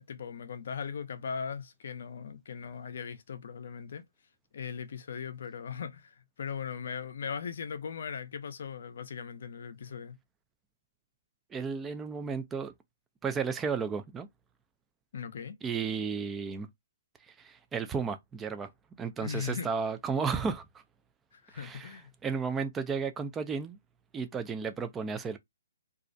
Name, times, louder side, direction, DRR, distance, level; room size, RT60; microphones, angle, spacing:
voice 1, 0.0-4.0 4.5-10.2 15.1-15.6 19.2-19.7 21.3-22.1, left 6 dB, 60° left, 0.5 m, -39 dB
voice 2, 11.5-12.7 13.2-14.3 15.6-16.7 17.3-18.7 19.0-20.7 21.5-21.9 22.2-23.8 24.1-25.4, right 5 dB, 10° right, 0.3 m, -33 dB
2.4 x 2.0 x 2.5 m
hypercardioid pair, 150°, 0 cm